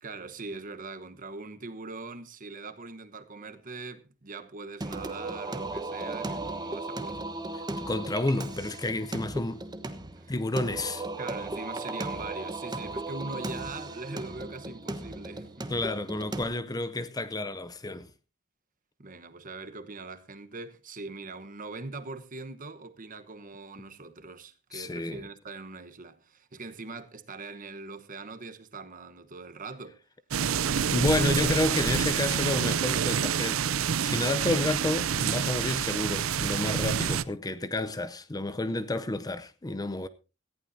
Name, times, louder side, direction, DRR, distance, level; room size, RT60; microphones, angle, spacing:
voice 1, 0.0-7.2 10.2-10.3 11.2-15.7 19.0-30.0 36.9-37.1, right 3 dB, 40° right, 1.1 m, -42 dB
Singing, 4.8-16.4, right 2 dB, 20° right, 1.1 m, -36 dB
voice 2, 7.5-9.6 10.3-11.0 15.7-18.1 24.7-25.3 30.9-33.6 34.0-40.1, left 2 dB, 20° left, 0.6 m, -30 dB
sound 1, 30.3-37.2, right 7 dB, 80° right, 0.6 m, -27 dB
18.0 x 14.5 x 2.7 m
head